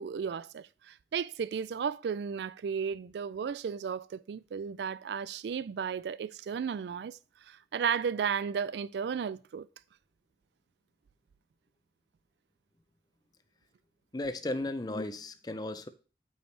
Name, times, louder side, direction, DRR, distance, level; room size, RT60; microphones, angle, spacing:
voice 1, 0.0-7.2 7.5-9.7, right 7 dB, 75° right, 0.3 m, -34 dB
voice 2, 14.1-15.9, left 2 dB, 20° left, 0.5 m, -35 dB
8.5 x 5.6 x 3.3 m
head